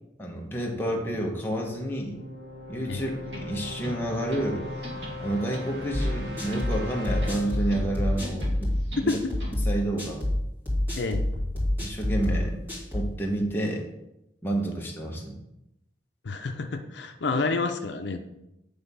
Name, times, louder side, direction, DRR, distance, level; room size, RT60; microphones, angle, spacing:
voice 1, 0.2-2.2 2.7-4.6 5.2-8.7 9.0-9.2 9.6-10.2 11.8-12.6 12.9-13.9 14.4-15.3, right 1 dB, 15° left, 0 dB, 1.0 m, -29 dB
sound 1, 1.5-9.3, left 1 dB, 65° right, 1.2 m, -40 dB
sound 2, 3.2-9.8, equal, 85° right, 2.1 m, -43 dB
sound 3, 5.9-13.1, left 1 dB, 10° right, 2.1 m, -28 dB
voice 2, 16.2-18.2, left 3 dB, 80° left, 6 dB, 0.6 m, -29 dB
7.9 x 3.5 x 5.4 m, 0.88 s
head